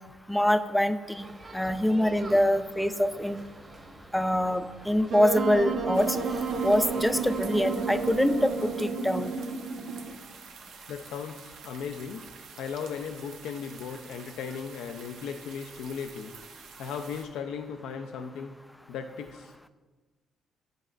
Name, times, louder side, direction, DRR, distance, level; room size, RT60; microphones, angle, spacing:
voice 1, 0.3-1.3 1.5-3.4 4.1-6.1 6.6-9.3, equal, 5° left, 11 dB, 0.3 m, -24 dB
sound 1, 1.1-8.8, right 2 dB, 40° right, 1.0 m, -47 dB
Wind instrument woodwind instrument, 5.1-10.2, right 4 dB, 60° right, 0.9 m, -31 dB
sound 2, 5.9-17.3, right 6 dB, 85° right, 0.6 m, -49 dB
voice 2, 10.9-16.3 16.8-18.5 18.9-19.5, left 6 dB, 85° left, 6 dB, 0.3 m, -37 dB
9.0 x 5.2 x 2.4 m, 1.3 s
cardioid pair, 90°, 0 cm